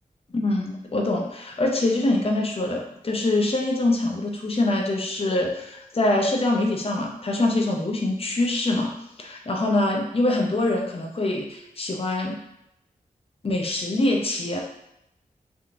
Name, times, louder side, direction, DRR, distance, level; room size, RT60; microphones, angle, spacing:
voice 1, 0.3-8.9 9.2-12.4 13.4-14.6, left 2 dB, 40° left, 1 dB, 0.6 m, -24 dB
3.4 x 2.8 x 2.5 m, 0.81 s
cardioid pair, 45°, 15 cm